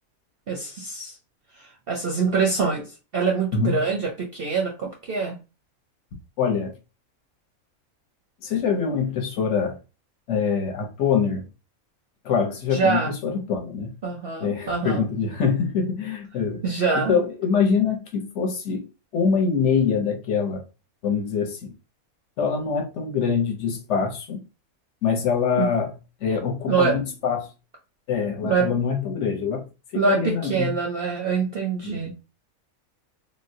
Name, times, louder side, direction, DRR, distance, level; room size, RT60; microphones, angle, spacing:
voice 1, 0.5-1.1 1.6-5.4 12.7-13.1 14.0-15.0 16.6-17.1 25.6-25.7 26.7-26.9 28.4-28.7 29.9-32.1, right 5 dB, 60° right, 0.6 m, -24 dB
voice 2, 6.4-6.7 8.4-9.8 10.3-11.5 12.2-13.9 14.4-16.6 16.9-18.9 19.1-20.6 21.0-21.7 22.4-24.4 25.0-25.9 26.2-27.5 28.1-29.6 29.9-30.7 31.8-32.0, left 6 dB, 60° left, 1.0 m, -24 dB
3.6 x 2.1 x 2.6 m
omnidirectional pair, 1.5 m